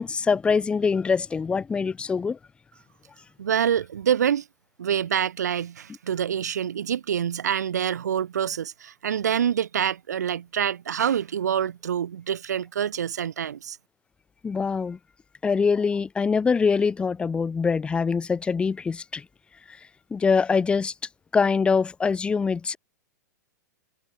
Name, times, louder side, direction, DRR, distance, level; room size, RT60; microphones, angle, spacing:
voice 1, 0.0-2.4 14.4-15.0 15.4-19.2 20.1-20.9 21.3-22.8, left 5 dB, 10° left, 0.4 m, -23 dB
voice 2, 3.4-4.5 4.8-13.8, right 9 dB, 65° right, 1.2 m, -26 dB
figure-of-eight pair, 100°, 10 cm